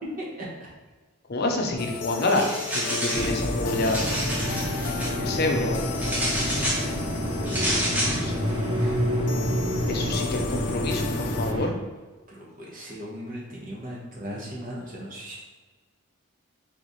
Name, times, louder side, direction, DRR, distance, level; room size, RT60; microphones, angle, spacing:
voice 1, 0.2-0.7 3.0-3.3 7.3-9.0 9.6-9.7 10.0-10.1 12.3-15.4, right 1 dB, 35° right, -4 dB, 1.0 m, -37 dB
voice 2, 1.3-4.0 5.2-5.8 8.2-8.3 9.9-11.7, left 2 dB, 45° left, 2 dB, 0.6 m, -27 dB
sound 1, 1.8-11.5, left 8 dB, 90° left, 0.4 m, -37 dB
sound 2, 2.2-3.3 3.7-5.1 6.0-6.9 7.5-8.2, equal, 5° right, 0.6 m, -29 dB
sound 3, 3.1-11.7, equal, 70° right, 1.4 m, -28 dB
3.8 x 3.3 x 4.0 m, 1.3 s
head